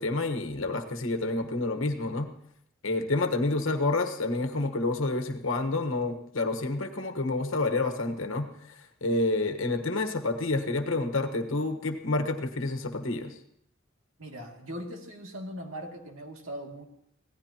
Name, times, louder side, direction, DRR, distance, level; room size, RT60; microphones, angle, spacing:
voice 1, 0.0-2.3 2.8-13.4, left 2 dB, 70° left, 6 dB, 1.4 m, -29 dB
voice 2, 14.2-16.9, equal, 90° right, 2 dB, 2.4 m, -40 dB
25.5 x 16.5 x 2.9 m, 0.73 s
head